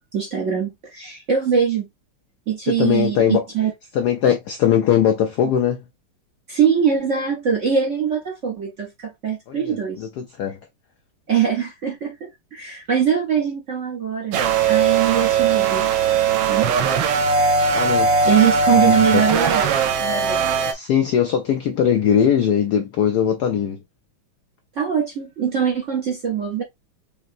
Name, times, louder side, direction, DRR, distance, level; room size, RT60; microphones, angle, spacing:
voice 1, 0.1-1.9 2.5-3.7 6.5-10.1 11.3-14.4 14.7-15.9 16.5-16.7 18.2-19.7 20.0-20.4 24.8-26.6, right 8 dB, 50° right, 0.9 m, -22 dB
voice 2, 2.7-3.4 3.9-5.8 9.5-10.6 17.7-18.1 18.9-19.2 20.7-23.8, left 9 dB, 80° left, 0.9 m, -20 dB
sound 1, 14.3-20.7, right 5 dB, 70° right, 1.3 m, -19 dB
5.3 x 2.9 x 2.5 m
omnidirectional pair, 2.3 m